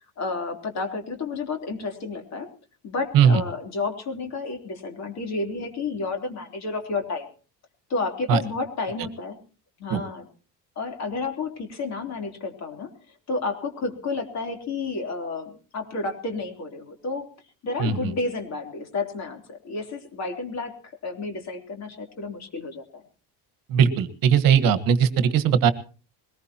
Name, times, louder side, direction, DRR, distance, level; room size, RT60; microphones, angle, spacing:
voice 1, 0.2-2.5 2.8-7.3 7.9-9.4 9.8-10.3 10.8-12.9 13.3-17.3 17.6-23.0, left 3 dB, 40° left, 5 dB, 3.6 m, -31 dB
voice 2, 23.7-25.7, right 7 dB, 55° right, 11 dB, 1.6 m, -19 dB
22.0 x 20.0 x 3.0 m, 0.38 s
cardioid pair, 175°, 40 cm